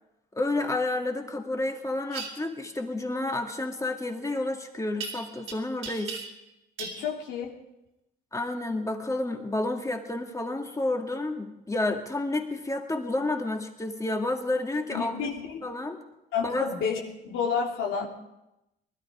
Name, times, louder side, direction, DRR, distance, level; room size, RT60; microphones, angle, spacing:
voice 1, 0.3-6.2 8.3-15.1 15.6-16.0 16.4-16.7, left 2 dB, 15° left, 3 dB, 2.3 m, -30 dB
sound 1, 2.1-2.3 5.0-5.5 5.8-6.5 6.8-7.0, right 5 dB, 80° right, 2.8 m, -37 dB
voice 2, 6.8-7.6 14.9-15.8 16.3-18.1, left 6 dB, 90° left, -2 dB, 2.9 m, -30 dB
20.5 x 12.5 x 5.0 m, 0.92 s
cardioid pair, 90°, 20 cm